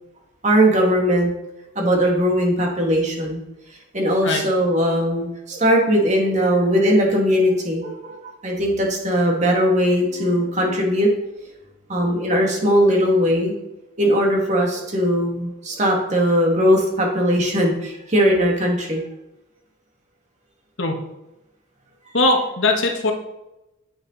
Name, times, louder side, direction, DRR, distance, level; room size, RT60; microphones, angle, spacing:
voice 1, 0.4-1.3 1.7-3.4 3.9-11.1 11.9-13.6 14.0-19.0, equal, 35° right, -1 dB, 2.5 m, -19 dB
voice 2, 22.1-23.1, left 2 dB, 65° left, 2 dB, 1.8 m, -19 dB
9.9 x 8.6 x 4.2 m, 0.94 s
head